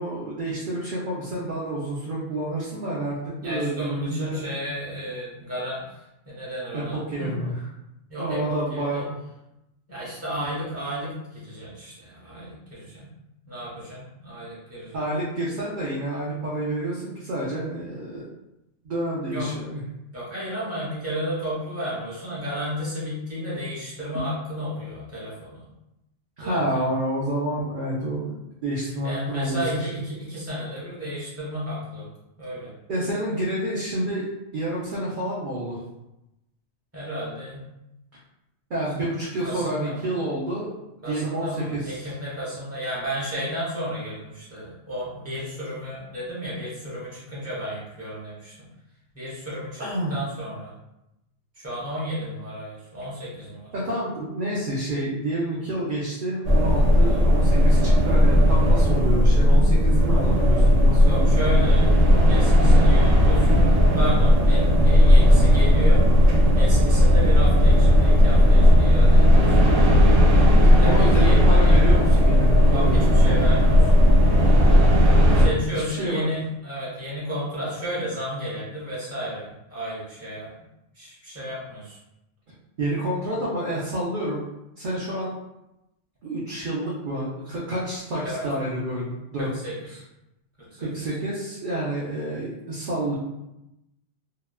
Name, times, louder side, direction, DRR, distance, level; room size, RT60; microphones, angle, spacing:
voice 1, 0.0-3.2 3.4-4.5 6.7-7.5 8.2-9.2 14.9-18.3 18.8-19.8 26.4-28.3 28.6-29.9 32.9-34.3 34.5-35.8 38.7-40.7 41.0-42.1 49.8-50.1 53.7-61.3 70.8-73.4 75.7-76.3 82.8-84.4 84.8-85.3 86.2-89.5 90.8-93.1, right 1 dB, 55° right, -6 dB, 0.6 m, -29 dB
voice 2, 3.4-7.4 8.1-9.0 9.9-13.1 13.5-15.1 19.3-19.5 20.1-25.6 26.4-26.8 29.0-32.1 32.4-32.7 36.9-37.7 39.0-39.1 39.4-40.1 41.0-48.5 49.1-49.8 50.1-50.7 51.5-53.7 57.0-57.2 59.5-59.7 61.0-66.1 66.5-69.5 70.8-71.8 72.7-74.1 75.3-80.5 80.9-82.0 88.2-88.4 89.4-90.0 90.6-91.1, equal, 15° right, -7 dB, 0.9 m, -33 dB
sound 1, 56.4-75.5, equal, 90° right, 1.0 m, -16 dB
2.8 x 2.2 x 2.2 m, 0.90 s
omnidirectional pair, 1.2 m